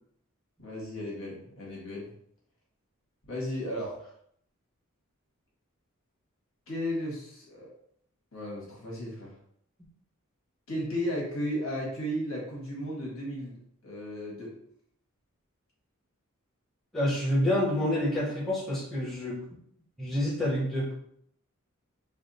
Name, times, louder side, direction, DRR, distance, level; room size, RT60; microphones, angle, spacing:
voice 1, 0.6-2.1 3.3-3.9 6.7-7.7 8.3-9.3 10.7-14.5, equal, 70° left, -4 dB, 1.5 m, -34 dB
voice 2, 16.9-19.4 20.0-20.9, left 1 dB, ahead, -5 dB, 0.8 m, -28 dB
3.4 x 2.0 x 4.0 m, 0.68 s
head